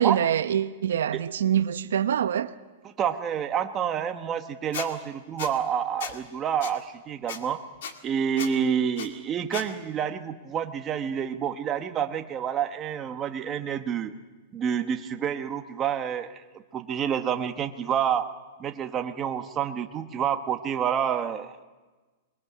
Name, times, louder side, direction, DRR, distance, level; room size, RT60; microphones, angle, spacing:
voice 1, 0.0-2.5, right 9 dB, 85° right, 0.8 m, -24 dB
voice 2, 2.8-7.6 8.0-14.1 14.5-16.4 16.7-18.3 18.6-21.6, right 8 dB, 20° right, 1.1 m, -28 dB
Squeak, 4.7-4.9 5.4-5.5 6.0-6.1 6.6-6.7 7.3-7.4 7.8-7.9 8.4-8.5 9.0-9.1 9.5-9.7, left 7 dB, 70° left, 2.2 m, -34 dB
27.5 x 21.0 x 5.9 m
supercardioid pair, 160°, 0 cm